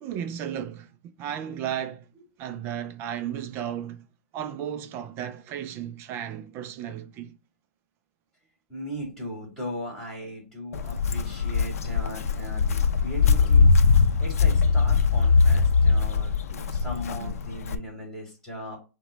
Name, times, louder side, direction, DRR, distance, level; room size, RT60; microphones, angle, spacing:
voice 1, 0.0-0.9 1.2-2.1 2.4-4.1 4.3-7.3 13.3-13.5 14.6-14.7 17.1-17.3, right 9 dB, 30° right, 0.4 m, -34 dB
voice 2, 8.7-13.7 14.2-18.8, equal, 5° left, 2.7 m, -38 dB
Walk footsteps, 10.7-17.8, left 4 dB, 75° left, 0.5 m, -21 dB
5.8 x 2.2 x 3.8 m
hypercardioid pair, 135°, 8 cm